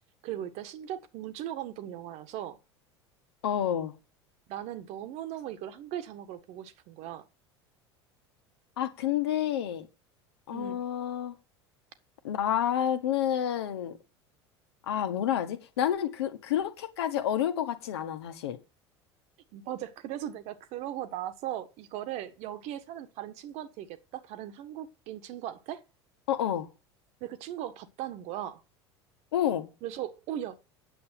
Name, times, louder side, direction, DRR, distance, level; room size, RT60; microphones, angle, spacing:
voice 1, 0.2-2.6 4.5-7.2 10.5-10.8 19.5-25.8 27.2-28.6 29.8-30.6, right 12 dB, 50° right, 1.5 m, -38 dB
voice 2, 3.4-3.9 8.8-9.9 10.5-11.3 12.2-14.0 14.9-18.6 26.3-26.7 29.3-29.7, left 10 dB, 65° left, 1.6 m, -29 dB
9.5 x 7.5 x 7.6 m
figure-of-eight pair, 70°, 14 cm